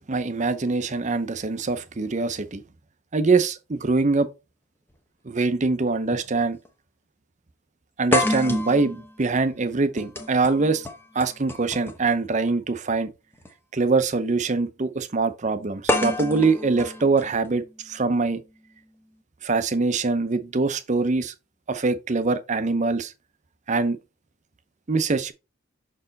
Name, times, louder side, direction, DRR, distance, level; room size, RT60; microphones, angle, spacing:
voice 1, 0.0-2.6 3.1-4.3 5.3-6.6 8.0-10.9 11.1-13.1 13.7-18.4 19.4-21.3 21.7-23.1 23.7-24.0 24.9-25.3, right 3 dB, 35° right, 0.6 m, -23 dB
sound 1, 4.9-5.0 6.1-6.3 6.7-6.8 8.1-12.1 13.3-13.5 15.9-17.9, left 2 dB, 10° left, 0.8 m, -29 dB
6.2 x 4.5 x 3.9 m
head